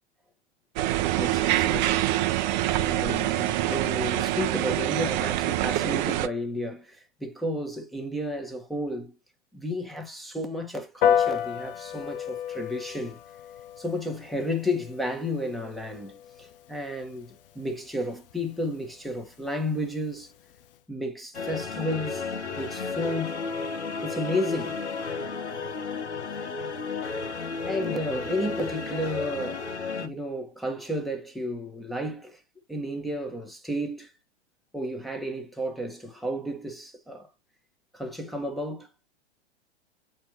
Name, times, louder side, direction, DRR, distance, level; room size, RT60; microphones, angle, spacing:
sound 1, 0.8-6.3, right 15 dB, 40° right, 0.8 m, -25 dB
voice 1, 1.1-2.0 2.8-9.1 9.5-13.2 13.8-20.3 20.9-22.2 22.6-23.4 24.0-24.8 27.7-29.7 29.9-32.4 32.7-34.1 34.7-37.3 37.9-38.9, left 1 dB, ahead, 1.3 m, -32 dB
Piano, 11.0-20.8, left 9 dB, 55° left, 0.8 m, -33 dB
sound 2, 21.3-30.1, left 4 dB, 80° left, 1.3 m, -33 dB
7.9 x 4.4 x 2.9 m
figure-of-eight pair, 105°, 33 cm